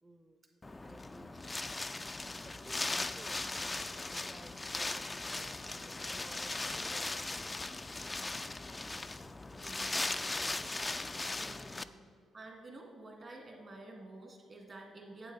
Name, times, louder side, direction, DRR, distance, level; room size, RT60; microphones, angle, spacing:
voice 1, 0.0-1.3 2.1-9.7, right 1 dB, 15° right, 9 dB, 0.7 m, -58 dB
Wind, 0.6-11.8, left 2 dB, 20° left, 0.3 m, -38 dB
voice 2, 9.6-10.1 10.9-11.0 11.3-11.9 12.3-15.3, right 2 dB, 40° right, 1 dB, 1.9 m, -50 dB
8.8 x 7.6 x 4.0 m, 2.1 s
cardioid pair, 85°, 0 cm